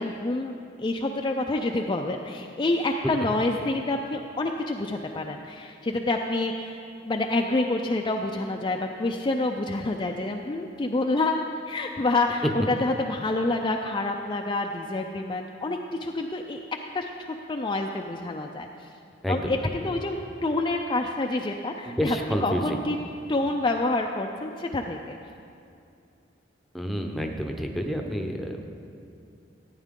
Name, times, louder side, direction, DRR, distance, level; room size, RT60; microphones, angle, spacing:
voice 1, 0.0-16.6 16.9-17.1 17.5-18.7 19.3-22.2 22.4-23.0 23.3-25.2, left 2 dB, 25° left, 2 dB, 0.4 m, -28 dB
voice 2, 19.2-19.7 21.8-22.8 26.7-28.6, equal, ahead, 3 dB, 0.7 m, -29 dB
15.0 x 9.2 x 3.7 m, 2.5 s
head